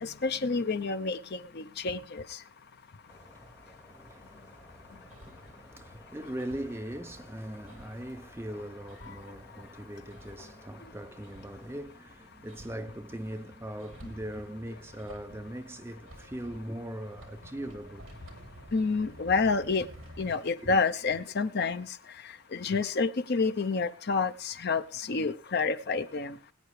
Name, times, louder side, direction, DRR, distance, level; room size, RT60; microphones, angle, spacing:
voice 1, 0.0-2.2 18.7-19.8 20.2-21.9 22.5-26.3, left 4 dB, 50° left, 0.7 m, -29 dB
sound 1, 3.1-11.9, left 1 dB, 10° left, 2.5 m, -55 dB
Hammer, 4.6-20.3, right 1 dB, 65° right, 3.1 m, -52 dB
voice 2, 5.7-18.1 18.4-18.5 20.6-20.7 22.6-22.8, right 1 dB, 10° right, 0.6 m, -40 dB
21.5 x 9.2 x 3.2 m
head